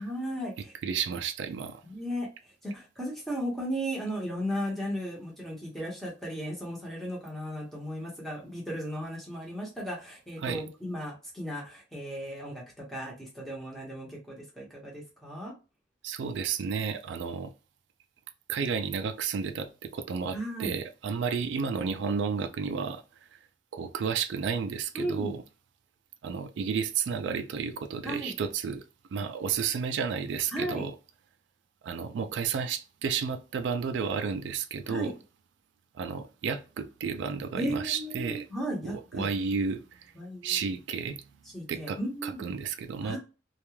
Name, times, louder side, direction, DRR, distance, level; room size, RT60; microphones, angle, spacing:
voice 1, 0.0-0.7 1.8-2.3 2.6-15.5 20.3-20.8 24.9-25.3 28.0-28.3 30.5-30.9 34.9-35.1 37.5-39.3 40.2-40.6 41.5-42.4 43.0-43.2, equal, ahead, 0.9 m, -35 dB
voice 2, 0.8-1.8 10.4-10.6 16.0-17.5 18.5-23.0 23.3-23.4 23.7-25.4 26.2-28.8 29.1-30.9 31.8-35.1 35.9-38.4 38.8-40.1 40.4-41.2 41.7-43.2, right 6 dB, 75° right, 0.3 m, -32 dB
2.3 x 2.2 x 3.0 m
head